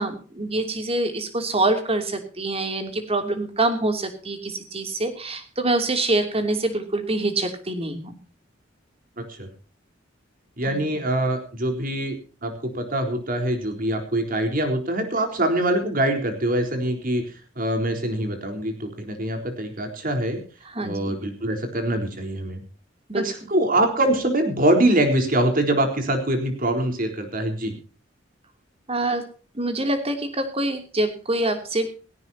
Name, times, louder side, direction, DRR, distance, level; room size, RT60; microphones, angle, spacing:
voice 1, 0.0-8.2 10.6-10.8 20.6-21.2 23.1-23.2 28.9-29.2 29.5-31.9, right 2 dB, 30° right, 7 dB, 2.9 m, -25 dB
voice 2, 9.2-9.5 10.6-12.2 12.4-17.3 17.6-20.4 20.8-22.6 23.1-27.7, right 1 dB, 50° right, 5 dB, 4.1 m, -24 dB
18.0 x 17.5 x 2.9 m, 0.39 s
head